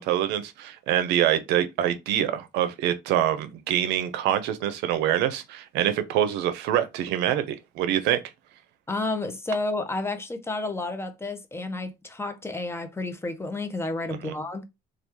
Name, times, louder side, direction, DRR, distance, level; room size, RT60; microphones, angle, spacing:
voice 1, 0.0-8.2 14.2-14.3, right 11 dB, 90° right, 0.5 m, -25 dB
voice 2, 8.9-14.6, left 2 dB, 15° left, 0.6 m, -31 dB
3.0 x 2.3 x 3.4 m
cardioid pair, 110°, 17 cm